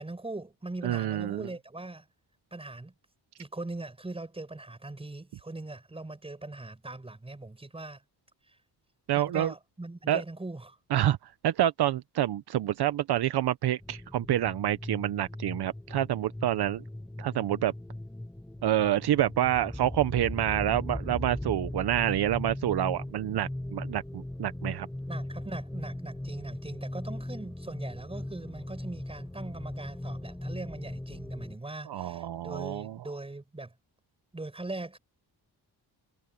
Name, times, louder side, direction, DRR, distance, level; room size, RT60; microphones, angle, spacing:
voice 1, 0.0-2.1 2.5-2.9 3.4-8.0 8.5-8.6 9.2-10.8 25.1-33.7 34.3-35.0, right 2 dB, 15° right, 7.6 m, -40 dB
voice 2, 0.8-1.5 9.1-9.5 10.1-10.2 10.9-11.2 11.4-16.8 17.2-17.7 18.6-24.9 31.9-33.0, right 12 dB, 70° right, 0.8 m, -27 dB
sound 1, 13.8-31.6, left 1 dB, 5° left, 0.8 m, -38 dB
wide cardioid pair, 165°, 40 cm